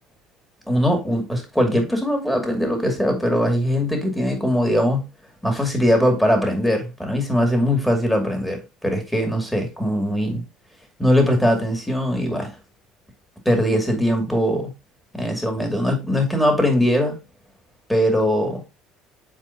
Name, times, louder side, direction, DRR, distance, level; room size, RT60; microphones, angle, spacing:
voice 1, 0.7-5.0 5.4-10.4 11.0-12.5 13.4-14.7 15.1-17.2 17.9-18.6, equal, 5° left, 2.5 m, -21 dB
7.4 x 4.7 x 2.8 m
supercardioid pair, 90°, 0 cm